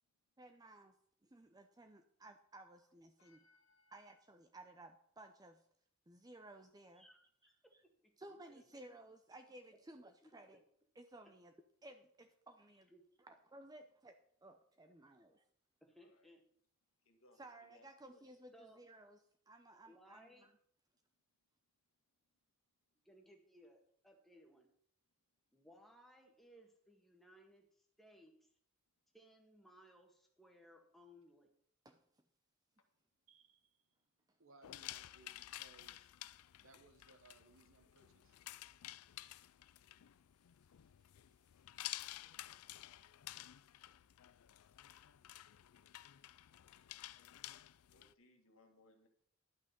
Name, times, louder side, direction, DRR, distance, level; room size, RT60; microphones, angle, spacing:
voice 1, 0.4-1.0 1.2-3.4 3.9-5.6 6.1-7.0 8.2-10.6 11.0-11.5 11.8-12.9 13.2-15.4 17.4-19.2 19.5-20.5 31.8-32.0, right 1 dB, 20° right, 0.6 m, -57 dB
voice 2, 3.2-4.2 16.0-16.3 17.0-17.9 18.1-18.2 32.8-32.9 47.9-49.1, left 2 dB, 70° left, 1.9 m, -69 dB
voice 3, 7.0-8.7 10.2-10.6 12.9-13.0 15.0-15.2 15.8-16.4 18.5-18.8 19.7-20.5 23.0-24.7 25.5-28.5 29.1-31.5, equal, ahead, 1.6 m, -64 dB
voice 4, 33.3-34.0 34.4-36.1 36.6-38.4, right 3 dB, 65° right, 1.3 m, -65 dB
sound 1, 34.6-48.1, left 15 dB, 90° left, 0.4 m, -52 dB
11.5 x 6.1 x 6.7 m
head